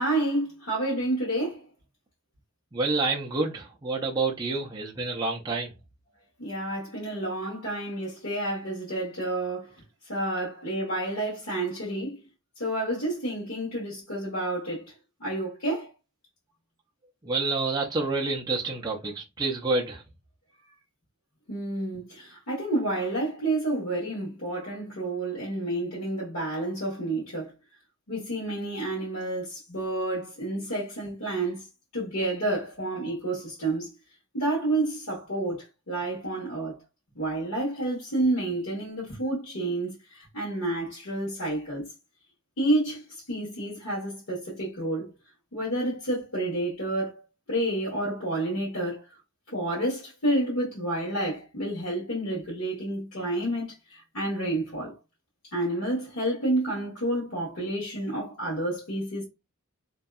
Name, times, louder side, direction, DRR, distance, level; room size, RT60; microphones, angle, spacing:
voice 1, 0.0-1.6 6.4-9.7 10.1-12.2 12.6-14.8 15.2-15.9 21.5-27.5 28.1-31.6 31.9-33.9 34.3-36.8 37.1-41.9 42.6-45.1 45.5-47.2 47.5-49.0 49.5-54.9 55.5-59.2, right 1 dB, 70° left, 1.1 m, -29 dB
voice 2, 2.7-5.7 17.2-20.0, right 3 dB, 20° right, 0.4 m, -28 dB
2.6 x 2.2 x 2.3 m
head